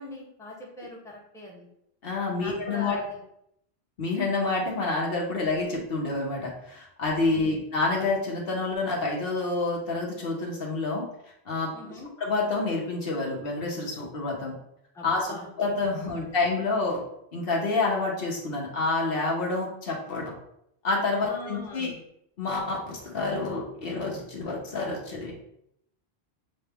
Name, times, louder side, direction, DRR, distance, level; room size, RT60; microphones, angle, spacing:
voice 1, 0.0-1.7 2.4-3.2 7.3-7.6 11.7-12.1 14.9-15.5 16.1-16.3 21.2-22.0, left 2 dB, 5° left, -3 dB, 0.8 m, -41 dB
voice 2, 2.0-3.0 4.0-11.0 11.5-11.7 12.2-14.5 15.0-17.0 17.3-20.3 20.8-21.9 22.4-25.3, left 3 dB, 65° left, -2 dB, 1.2 m, -28 dB
6.5 x 2.2 x 3.4 m, 0.76 s
omnidirectional pair, 1.1 m